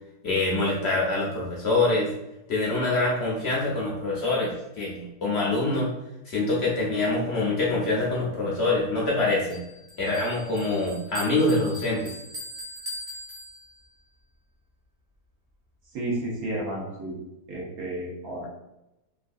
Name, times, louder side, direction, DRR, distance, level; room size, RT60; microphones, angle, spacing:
voice 1, 0.2-2.1 2.5-5.9 6.2-9.6 10.0-12.1, left 2 dB, 65° left, -4 dB, 0.6 m, -25 dB
Bell, 9.5-14.0, equal, 50° right, 0.8 m, -41 dB
voice 2, 15.9-17.2 17.5-18.5, right 1 dB, 70° right, -4 dB, 1.3 m, -32 dB
3.1 x 2.4 x 2.5 m, 0.91 s
omnidirectional pair, 1.7 m